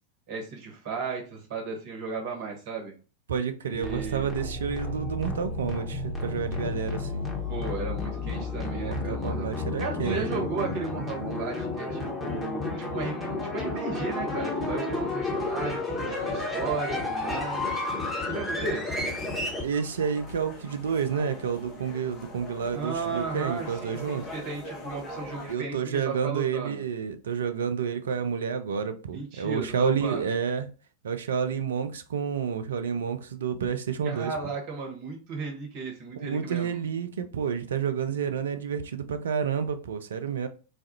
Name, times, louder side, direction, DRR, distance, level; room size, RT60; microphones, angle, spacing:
voice 1, 0.3-2.9 3.6-4.3 7.5-9.5 9.8-13.1 13.5-17.7 18.3-19.0 22.7-26.8 29.1-30.3 34.0-36.7, right 4 dB, 50° right, 1.1 m, -35 dB
voice 2, 3.3-7.3 8.8-10.7 19.6-24.2 25.5-30.7 31.0-34.3 36.1-40.5, right 7 dB, 65° right, 0.4 m, -30 dB
sound 1, 3.7-19.6, left 2 dB, 5° left, 1.2 m, -31 dB
sound 2, 18.5-25.5, left 2 dB, 35° left, 0.9 m, -43 dB
4.1 x 2.4 x 2.7 m
figure-of-eight pair, 90°, 0 cm